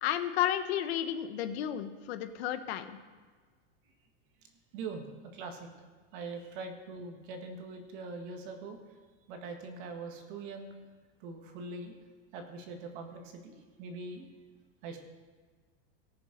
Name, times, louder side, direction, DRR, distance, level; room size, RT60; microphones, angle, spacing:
voice 1, 0.0-3.0, left 11 dB, 75° left, 10 dB, 1.0 m, -32 dB
voice 2, 4.7-5.7 6.1-8.8 9.3-10.7 11.2-11.9 12.3-14.3 14.8-15.0, right 3 dB, 55° right, 4 dB, 1.8 m, -42 dB
18.5 x 6.9 x 5.2 m, 1.5 s
supercardioid pair, 175°, 31 cm